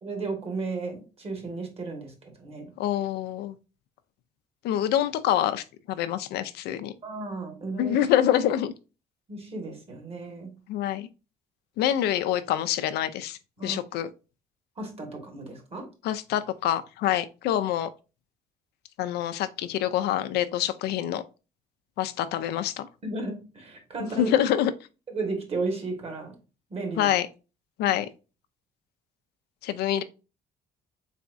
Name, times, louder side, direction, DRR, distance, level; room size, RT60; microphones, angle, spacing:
voice 1, 0.0-2.7 7.0-7.9 9.3-10.5 13.6-13.8 14.8-15.9 23.0-24.3 25.1-26.4 26.7-27.1 27.8-27.9, right 3 dB, 35° right, 1.5 m, -34 dB
voice 2, 2.8-3.6 4.6-6.9 7.8-8.7 10.7-11.1 11.8-14.1 16.0-17.9 19.0-21.2 22.0-22.9 24.2-24.7 27.0-27.3 27.8-28.1 29.6-30.0, left 11 dB, 75° left, 0.4 m, -26 dB
4.0 x 3.5 x 2.5 m
cardioid pair, 110°, 17 cm